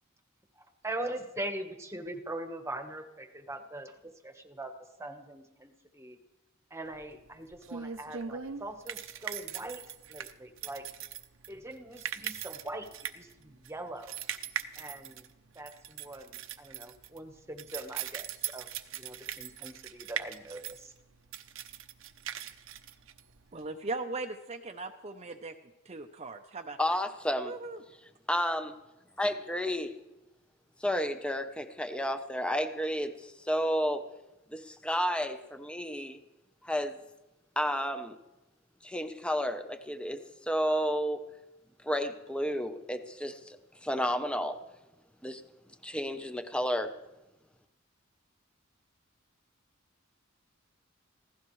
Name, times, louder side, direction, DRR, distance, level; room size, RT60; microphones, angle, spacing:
voice 1, 0.6-4.7 5.0-6.2 6.7-9.8 10.1-10.9 11.5-14.2 14.8-15.3 15.5-20.9, right 1 dB, 15° right, 6 dB, 1.3 m, -42 dB
sound 1, 6.9-23.7, right 9 dB, 70° right, 0.8 m, -41 dB
voice 2, 23.5-25.5 25.9-27.0 27.4-27.8, right 3 dB, 30° right, 5 dB, 0.7 m, -39 dB
voice 3, 26.8-27.5 28.3-28.7 29.2-29.9 30.8-34.1 34.5-36.2 36.6-37.0 37.6-38.2 38.8-41.2 41.8-43.6 43.8-44.6 45.2-45.4 45.8-46.9, equal, 5° left, 8 dB, 0.8 m, -31 dB
22.5 x 16.0 x 3.2 m, 0.99 s
head